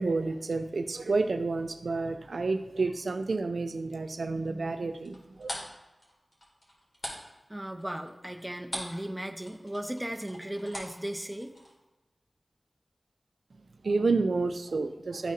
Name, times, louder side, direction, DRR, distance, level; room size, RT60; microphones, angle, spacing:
voice 1, 0.0-5.6 13.8-15.3, right 3 dB, 85° right, 8 dB, 0.4 m, -30 dB
sound 1, 5.0-9.1 9.3-11.7, equal, 45° left, 2.0 m, -41 dB
voice 2, 7.5-11.5, right 1 dB, 10° right, 4 dB, 0.7 m, -36 dB
11.5 x 4.1 x 2.5 m, 1.1 s
wide cardioid pair, 60°, 0 cm